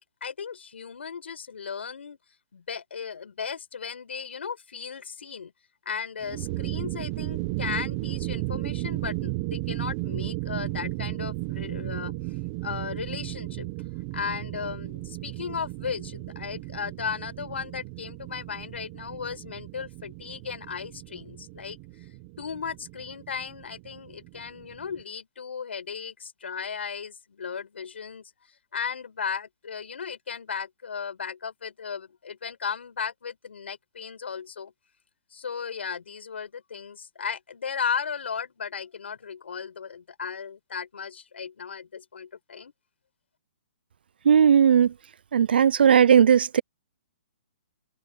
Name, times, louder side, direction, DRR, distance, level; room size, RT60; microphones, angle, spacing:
voice 1, 0.0-2.2 2.5-5.5 5.8-12.2 12.6-13.7 14.1-21.8 22.4-28.2 28.7-34.7 35.3-42.7, left 6 dB, 85° left, 4.7 m, -35 dB
sound 1, 6.2-25.0, right 21 dB, 20° right, 0.8 m, -35 dB
voice 2, 44.2-44.9 45.3-46.6, right 8 dB, 60° right, 0.5 m, -17 dB
hypercardioid pair, 180°, 6 cm